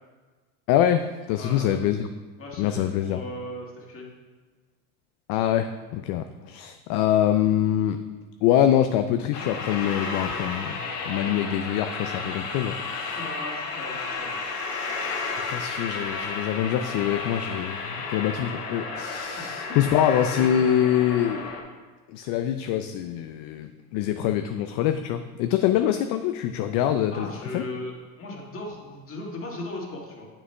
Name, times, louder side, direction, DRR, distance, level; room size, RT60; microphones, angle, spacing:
voice 1, 0.7-2.1 2.6-3.2 5.3-8.0 8.4-10.8 11.1-13.2 15.5-21.5 22.1-27.6, left 10 dB, 50° left, 9 dB, 0.5 m, -24 dB
voice 2, 1.3-1.7 2.4-4.1 13.2-14.6 19.4-19.8 20.4-20.6 27.1-30.3, left 2 dB, 30° left, -2 dB, 1.9 m, -37 dB
sound 1, 9.3-21.6, left 4 dB, 80° left, 1.3 m, -32 dB
8.6 x 7.3 x 2.2 m, 1.3 s
hypercardioid pair, 95°, 45 cm